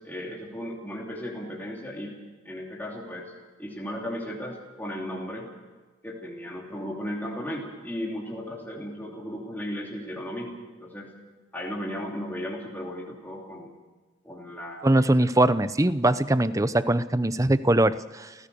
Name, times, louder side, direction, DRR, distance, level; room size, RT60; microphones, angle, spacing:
voice 1, 0.0-2.2 2.4-3.3 3.6-5.5 6.0-11.1 11.5-13.7 14.2-15.1, equal, 10° left, -3 dB, 2.9 m, -35 dB
voice 2, 14.8-18.3, right 1 dB, 15° right, 14 dB, 0.6 m, -22 dB
30.0 x 15.5 x 6.9 m, 1.3 s
head